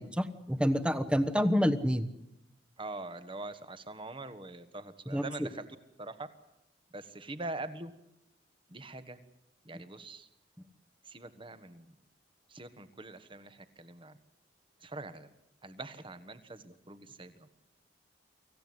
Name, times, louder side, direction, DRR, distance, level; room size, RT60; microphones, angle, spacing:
voice 1, 0.0-2.0 5.1-5.5, equal, 5° right, 11 dB, 1.2 m, -28 dB
voice 2, 2.8-5.6 6.0-6.3 6.9-7.9 8.7-9.2 9.6-10.3 11.0-11.9 12.5-14.2 14.8-15.3 15.6-17.5, right 2 dB, 25° right, 11 dB, 1.5 m, -43 dB
25.0 x 15.5 x 9.7 m, 0.86 s
head